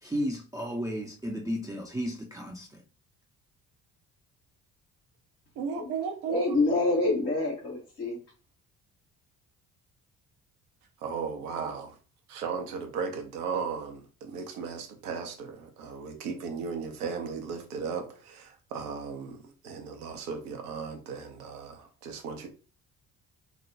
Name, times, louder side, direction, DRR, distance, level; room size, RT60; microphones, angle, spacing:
voice 1, 0.0-2.8, equal, 10° right, 0.4 m, -33 dB
voice 2, 5.6-6.5 11.0-11.9 12.3-19.4 19.6-22.5, right 5 dB, 75° right, 0.7 m, -36 dB
voice 3, 6.3-8.2, left 2 dB, 80° left, 1.2 m, -26 dB
3.2 x 2.1 x 2.5 m
figure-of-eight pair, 45°, 45 cm